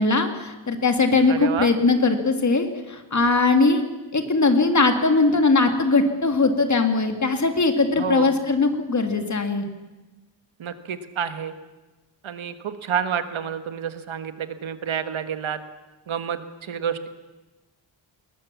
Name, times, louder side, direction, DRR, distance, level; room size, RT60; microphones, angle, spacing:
voice 1, 0.0-3.8 4.1-9.7, left 3 dB, 35° left, 6 dB, 2.1 m, -20 dB
voice 2, 1.3-1.7 8.0-8.4 10.6-11.5 12.2-15.6 16.1-17.1, right 7 dB, 85° right, 10 dB, 1.6 m, -29 dB
21.0 x 19.5 x 7.3 m, 1.2 s
wide cardioid pair, 165°, 46 cm